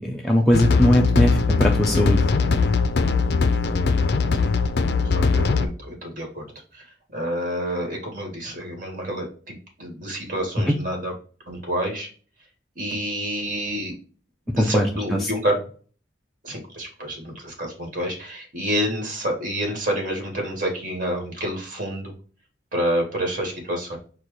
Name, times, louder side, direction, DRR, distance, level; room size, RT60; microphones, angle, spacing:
voice 1, 0.0-2.2 14.6-14.9 15.1-15.3, equal, ahead, -2 dB, 0.4 m, -20 dB
sound 1, 0.5-5.7, left 4 dB, 65° left, 0.5 m, -20 dB
voice 2, 5.0-6.5 6.7-6.8 7.1-11.1 11.5-12.1 12.8-13.9 14.5-15.6 16.4-22.1 22.7-24.0, equal, 50° right, 1 dB, 1.8 m, -28 dB
4.5 x 2.3 x 4.6 m, 0.40 s
head